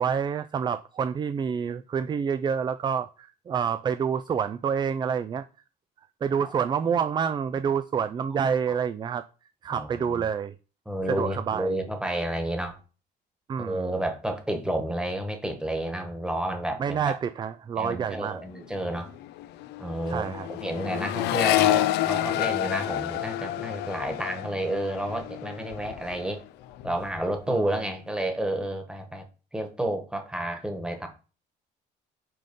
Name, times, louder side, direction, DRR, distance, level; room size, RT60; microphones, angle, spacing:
voice 1, 0.0-5.4 6.2-9.2 9.6-10.5 11.1-11.8 13.5-13.9 16.8-18.4 20.1-20.5 27.5-27.7, right 7 dB, 25° right, 0.3 m, -28 dB
voice 2, 9.7-10.2 10.8-12.8 13.6-17.1 17.8-19.1 19.8-26.4 26.8-29.2 29.5-31.1, right 1 dB, 5° right, 1.4 m, -31 dB
Accelerating revving vroom, 18.3-18.6 18.8-26.4 26.7-27.3, left 14 dB, 80° left, 0.4 m, -29 dB
5.4 x 3.7 x 5.4 m
cardioid pair, 110°, 17 cm